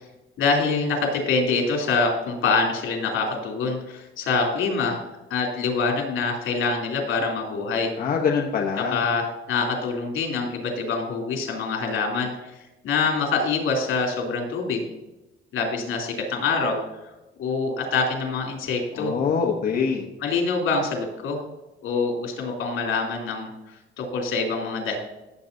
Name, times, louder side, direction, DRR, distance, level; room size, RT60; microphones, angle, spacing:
voice 1, 0.4-5.0 5.3-7.9 8.8-12.5 12.8-14.8 15.5-16.8 17.4-19.1 20.2-21.4 21.8-23.5 24.0-25.0, left 4 dB, 80° left, 0 dB, 3.0 m, -25 dB
voice 2, 8.0-9.0 18.9-20.0, left 6 dB, 45° left, 0 dB, 1.1 m, -24 dB
16.0 x 7.6 x 2.7 m, 1.0 s
cardioid pair, 180°, 20 cm